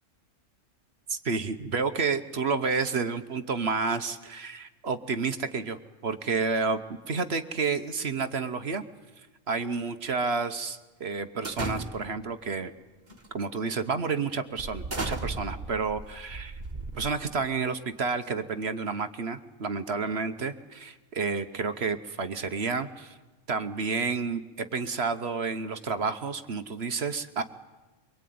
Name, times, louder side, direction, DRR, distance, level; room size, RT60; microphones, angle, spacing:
voice 1, 1.1-5.8 6.0-6.8 7.1-8.8 9.5-12.7 13.3-16.6 17.0-23.1 23.5-27.4, right 4 dB, 55° right, 10 dB, 1.2 m, -30 dB
sound 1, 11.4-12.3 13.1-13.3 13.8-13.9 14.6-17.5, right 2 dB, 35° right, 2.0 m, -36 dB
23.5 x 23.5 x 9.4 m, 1.2 s
omnidirectional pair, 1.3 m